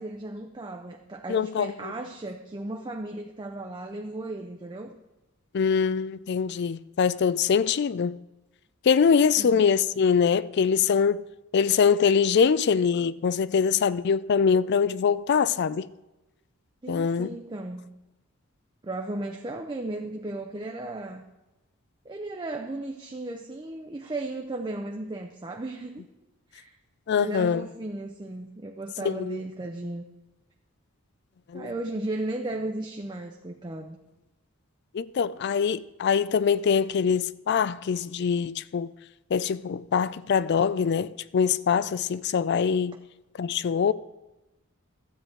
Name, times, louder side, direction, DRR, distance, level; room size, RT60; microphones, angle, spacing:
voice 1, 0.0-4.9 9.4-9.6 16.8-17.9 18.8-21.2 22.0-26.0 26.5-26.7 27.1-30.0 31.5-34.0, right 2 dB, 20° right, 0.5 m, -35 dB
voice 2, 1.3-1.7 5.5-8.2 8.8-11.2 11.5-15.9 16.9-17.3 27.1-27.7 29.0-29.4 31.5-31.7 34.9-38.9 39.3-43.0 43.4-43.9, left 6 dB, 50° left, 0.3 m, -23 dB
13.0 x 8.0 x 4.5 m
head